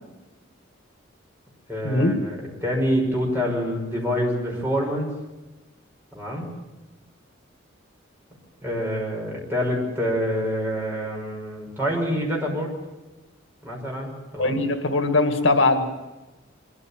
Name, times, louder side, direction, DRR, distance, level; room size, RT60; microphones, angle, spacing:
voice 1, 1.7-5.1 6.1-6.5 8.6-12.7 13.6-14.6, equal, 10° right, -2 dB, 6.1 m, -26 dB
voice 2, 14.4-16.0, left 2 dB, 80° left, 7 dB, 1.9 m, -21 dB
23.5 x 14.5 x 9.0 m, 1.1 s
head